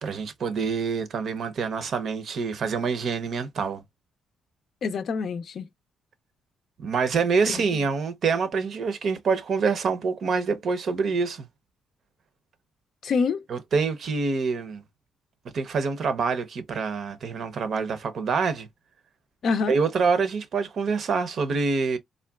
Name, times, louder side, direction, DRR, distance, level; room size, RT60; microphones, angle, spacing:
voice 1, 0.0-3.8 6.8-11.5 13.5-14.8 15.5-18.7 19.7-22.0, right 5 dB, 60° right, 0.6 m, -26 dB
voice 2, 4.8-5.7 7.5-7.9 13.0-13.4 19.4-19.8, left 5 dB, 60° left, 0.5 m, -26 dB
3.6 x 2.2 x 2.3 m
cardioid pair, 90°, 0 cm